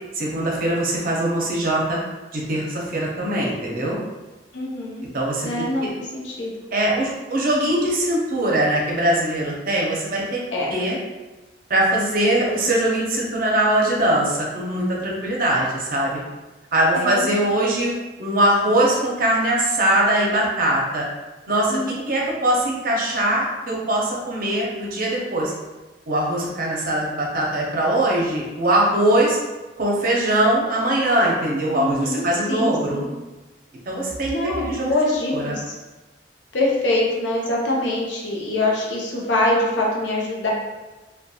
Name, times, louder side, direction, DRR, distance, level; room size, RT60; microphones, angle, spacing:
voice 1, 0.1-2.0 2.3-4.0 5.1-5.7 6.7-10.4 10.7-11.0 11.7-16.2 16.7-17.9 18.2-21.1 21.5-25.5 26.1-29.4 29.8-33.1 33.9-34.9 35.3-35.6, right 1 dB, 50° right, -3 dB, 0.6 m, -21 dB
voice 2, 4.5-5.0 5.4-5.9 6.1-6.5 10.5-10.7 16.9-17.3 21.7-22.0 31.7-33.1 34.2-35.7 36.5-40.5, left 1 dB, 80° left, -3 dB, 0.6 m, -24 dB
2.8 x 2.2 x 2.3 m, 1.1 s
head